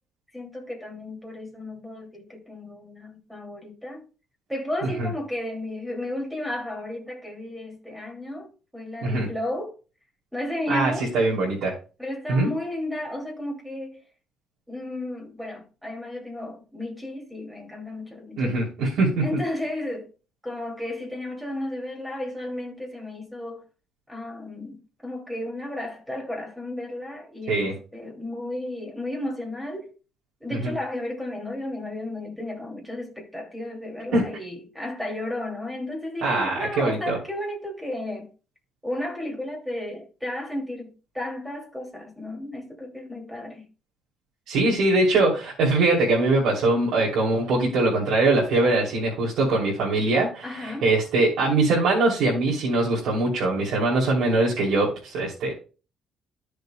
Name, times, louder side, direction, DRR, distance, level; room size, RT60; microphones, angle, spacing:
voice 1, 0.3-4.0 4.5-9.7 10.3-11.1 12.0-14.0 14.7-18.6 19.2-20.1 20.4-23.6 24.1-29.9 30.4-38.3 38.8-43.7 50.4-50.8, left 1 dB, 5° right, 2.5 m, -33 dB
voice 2, 10.7-11.7 12.3-12.5 18.4-19.2 27.5-27.7 30.5-30.7 34.1-34.4 36.2-37.2 44.5-55.5, right 2 dB, 80° right, 3.1 m, -22 dB
13.5 x 6.5 x 2.2 m
cardioid pair, 165°, 0 cm